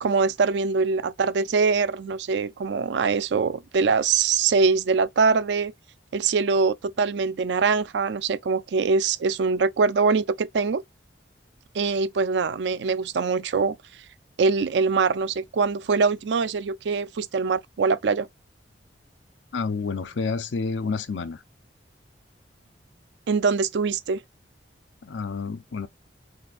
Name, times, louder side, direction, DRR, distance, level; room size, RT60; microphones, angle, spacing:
voice 1, 0.0-5.7 6.1-10.8 11.7-13.7 14.4-18.3 23.3-24.2, right 4 dB, 75° right, 0.4 m, -23 dB
voice 2, 19.5-21.4 25.0-25.9, left 4 dB, 90° left, 0.6 m, -29 dB
6.3 x 2.6 x 2.4 m
head